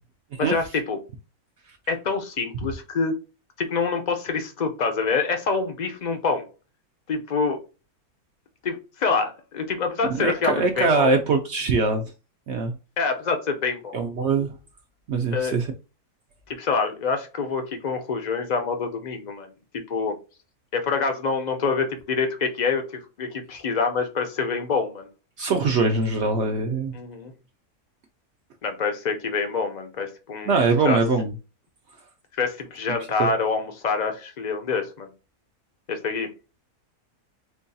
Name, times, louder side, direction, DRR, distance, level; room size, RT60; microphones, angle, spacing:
voice 1, 0.4-1.0 1.9-3.1 3.6-6.5 7.1-7.6 8.6-11.1 13.0-14.0 15.3-15.6 16.5-19.5 19.9-20.2 20.7-25.1 26.9-27.3 28.6-30.5 30.8-31.0 32.3-35.1 35.9-36.3, left 4 dB, 55° left, 0.4 m, -26 dB
voice 2, 10.0-12.0 12.5-12.7 13.9-14.6 15.1-15.7 25.4-26.9 30.5-31.3 33.2-33.3, right 3 dB, 70° right, 0.7 m, -22 dB
4.5 x 2.3 x 2.6 m
omnidirectional pair, 1.6 m